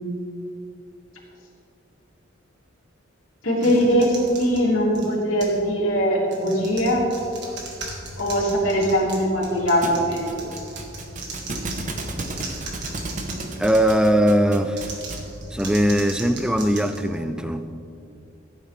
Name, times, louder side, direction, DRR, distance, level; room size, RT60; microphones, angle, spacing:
voice 1, 3.4-7.0 8.2-10.6, equal, 85° left, 3.0 m, -21 dB
sound 1, 3.6-5.7 6.2-14.2 14.7-17.6, right 2 dB, 60° right, 1.7 m, -38 dB
Thump thud, 9.8-15.4, right 2 dB, 40° right, 0.9 m, -34 dB
voice 2, 13.6-14.8 15.5-17.7, equal, 5° right, 0.4 m, -20 dB
15.5 x 9.2 x 3.3 m
head